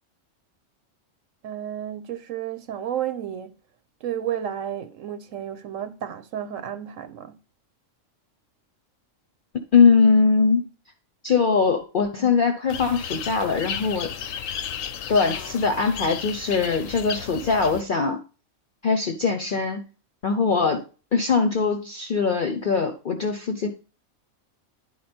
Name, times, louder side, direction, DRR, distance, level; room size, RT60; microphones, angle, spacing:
voice 1, 1.4-3.5 4.0-7.3, right 10 dB, 80° right, 1.1 m, -32 dB
voice 2, 9.7-10.6 11.2-14.1 15.1-18.2 18.8-19.8 20.2-20.8 21.1-23.7, left 5 dB, 50° left, 0.8 m, -21 dB
sound 1, 12.7-17.8, left 8 dB, 85° left, 1.1 m, -34 dB
10.0 x 4.3 x 4.3 m
omnidirectional pair, 1.3 m